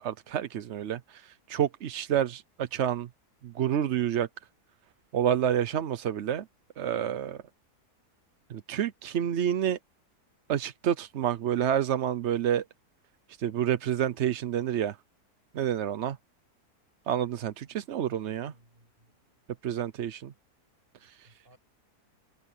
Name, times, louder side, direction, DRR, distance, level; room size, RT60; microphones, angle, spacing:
voice 1, 0.0-3.1 3.4-4.3 5.1-6.4 6.8-7.4 8.5-9.8 10.5-12.6 13.4-15.0 15.5-16.2 17.1-18.5 19.6-20.3, right 10 dB, 55° right, 0.8 m, -28 dB
voice 2, 18.2-19.4 21.0-21.6, right 1 dB, 35° right, 8.4 m, -63 dB
open air
omnidirectional pair, 1.7 m